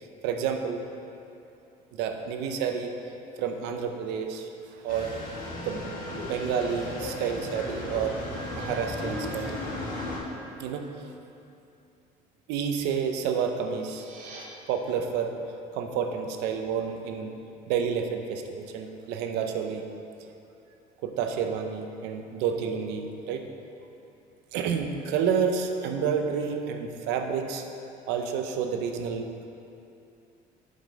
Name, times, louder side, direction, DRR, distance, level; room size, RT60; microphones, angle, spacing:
voice 1, 0.2-0.8 1.9-2.9 3.4-5.1 5.6-5.8 6.3-8.2 8.5-9.6 10.6-11.1 12.5-14.1 14.7-15.4 15.7-17.3 17.7-19.8 21.0-23.5 24.5-27.6 28.1-29.4, right 7 dB, 90° right, 5 dB, 0.7 m, -29 dB
sound 1, 4.9-10.2, left 1 dB, 55° left, 1.5 m, -35 dB
sound 2, 13.6-14.4, right 4 dB, 45° right, 1.3 m, -47 dB
7.7 x 5.4 x 5.1 m, 2.7 s
cardioid pair, 150°, 17 cm